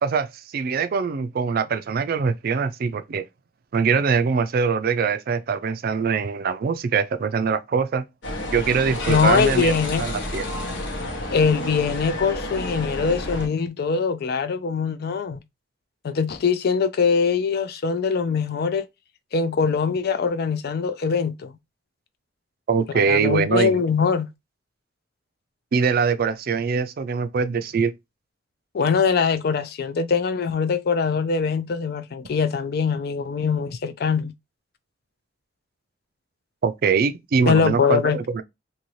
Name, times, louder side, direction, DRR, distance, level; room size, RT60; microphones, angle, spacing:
voice 1, 0.0-3.2 3.7-8.0 8.5-9.7 10.0-10.4 22.7-23.7 25.7-27.9 36.6-38.4, right 5 dB, 55° right, 0.4 m, -23 dB
sound 1, 8.2-13.5, left 1 dB, 85° left, 1.0 m, -30 dB
voice 2, 9.1-10.0 11.3-15.4 16.0-18.9 19.3-21.6 22.9-24.3 28.7-34.3 37.5-38.2, left 5 dB, 55° left, 0.4 m, -22 dB
2.8 x 2.7 x 3.0 m
head